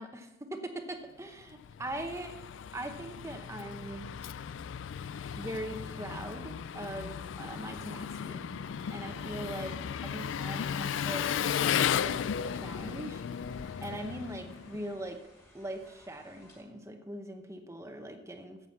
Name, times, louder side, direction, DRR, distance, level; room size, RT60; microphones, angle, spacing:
voice 1, 0.0-2.4 2.7-4.1 5.4-8.5 8.9-11.3 11.7-12.2 12.4-13.2 13.8-15.2 15.5-18.7, right 1 dB, 15° right, 6 dB, 0.8 m, -41 dB
Engine, 1.4-15.0, left 8 dB, 70° left, 0.3 m, -35 dB
sound 1, 8.9-16.6, equal, 15° left, 2.2 m, -58 dB
9.6 x 7.8 x 7.0 m, 1.0 s
head